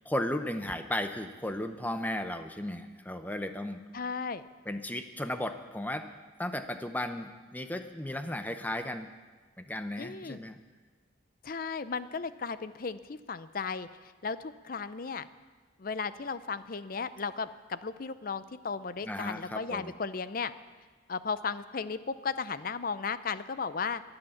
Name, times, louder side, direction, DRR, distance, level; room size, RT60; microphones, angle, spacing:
voice 1, 0.0-3.8 4.7-6.1 6.4-9.1 9.6-10.6 19.0-19.9, left 1 dB, 10° left, 8 dB, 0.7 m, -35 dB
voice 2, 3.9-4.4 10.0-10.4 11.4-15.3 15.8-20.5 21.1-24.0, left 5 dB, 45° left, 14 dB, 0.5 m, -35 dB
22.5 x 8.0 x 7.1 m, 1.4 s
head